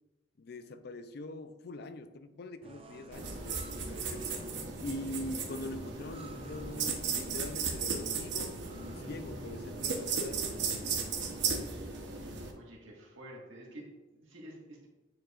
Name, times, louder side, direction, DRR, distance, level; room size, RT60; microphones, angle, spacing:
voice 1, 0.4-4.3 4.8-10.4, left 1 dB, 55° left, 10 dB, 0.4 m, -43 dB
sound 1, 2.6-11.5, right 1 dB, 30° right, 0.4 m, -50 dB
sound 2, 3.1-12.5, right 5 dB, 65° right, 0.9 m, -36 dB
voice 2, 12.5-14.9, right 1 dB, 90° right, -3 dB, 1.7 m, -49 dB
9.0 x 4.8 x 2.4 m, 1.1 s
head